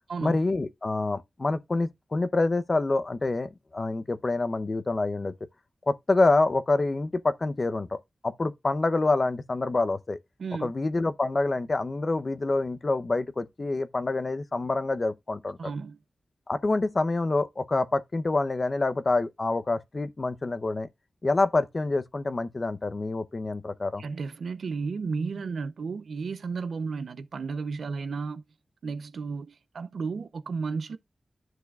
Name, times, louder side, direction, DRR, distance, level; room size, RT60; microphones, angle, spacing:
voice 1, 0.2-5.3 5.9-10.2 10.6-15.6 16.5-20.9 21.2-24.0, left 2 dB, 40° left, 0.7 m, -27 dB
voice 2, 10.4-10.7 15.6-16.0 24.0-28.4 28.8-31.0, right 4 dB, 85° right, 0.6 m, -33 dB
10.5 x 6.1 x 2.4 m
wide cardioid pair, 75°, 0 cm